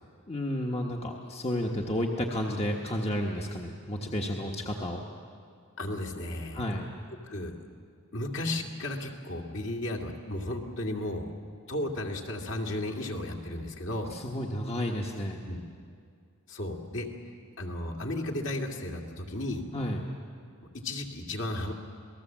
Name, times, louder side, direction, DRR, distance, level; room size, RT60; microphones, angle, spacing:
voice 1, 0.3-5.0 6.5-6.9 14.1-15.4 19.7-20.0, left 1 dB, 30° left, 1 dB, 1.3 m, -31 dB
voice 2, 5.8-6.6 7.3-7.5 8.1-11.3 11.7-14.1 15.5-15.6 16.5-17.1 17.6-19.6 20.7-21.7, left 1 dB, 55° left, 1 dB, 2.3 m, -34 dB
27.5 x 19.0 x 7.4 m, 2.2 s
head